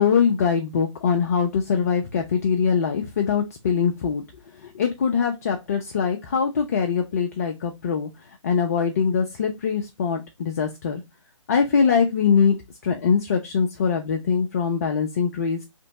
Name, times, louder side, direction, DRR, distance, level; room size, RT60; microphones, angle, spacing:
voice 1, 0.0-4.2 4.5-8.1 8.4-11.0 11.5-12.6 12.8-15.7, left 6 dB, 30° left, 3 dB, 0.4 m, -22 dB
3.3 x 3.0 x 2.7 m, 0.22 s
figure-of-eight pair, 140°, 17 cm